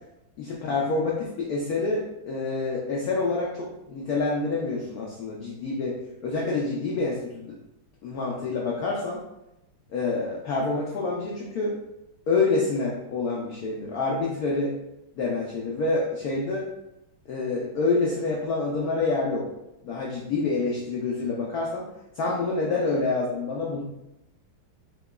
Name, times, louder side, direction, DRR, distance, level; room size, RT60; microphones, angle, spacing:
voice 1, 0.4-6.0 6.2-7.5 8.0-9.2 9.9-11.8 12.3-14.7 15.2-16.7 17.3-19.5 19.8-21.9 22.2-23.8, left 3 dB, 80° left, -4 dB, 0.8 m, -27 dB
4.6 x 2.9 x 2.2 m, 0.89 s
omnidirectional pair, 2.3 m